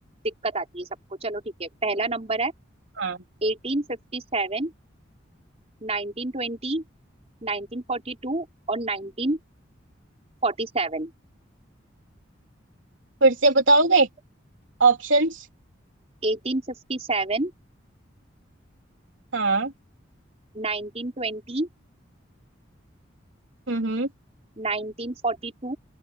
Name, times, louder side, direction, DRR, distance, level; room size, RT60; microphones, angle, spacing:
voice 1, 0.2-0.9 1.2-2.5 3.4-4.7 5.8-6.8 7.4-9.4 10.4-11.1 16.2-17.5 20.5-21.7 24.6-25.8, right 2 dB, 35° right, 4.1 m, -28 dB
voice 2, 13.2-14.1 14.8-15.5 19.3-19.7 23.7-24.1, right 3 dB, 75° right, 3.8 m, -20 dB
open air
head